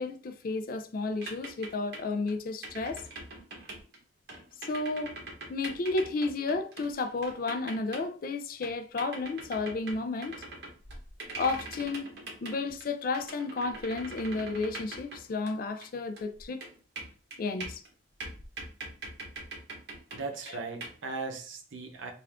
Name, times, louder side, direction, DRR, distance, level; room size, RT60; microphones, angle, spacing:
voice 1, 0.0-3.1 4.7-5.2 5.5-10.3 11.4-12.1 12.4-16.6 17.4-17.8, left 3 dB, 50° left, 0.4 m, -32 dB
sound 1, 1.2-2.3 2.6-4.0 4.3-8.3 8.6-15.9 16.2-17.9 18.2-20.5 20.8-20.9, right 2 dB, 55° right, 1.0 m, -42 dB
voice 2, 20.1-22.1, right 3 dB, 85° right, 0.7 m, -38 dB
3.4 x 2.5 x 3.5 m
head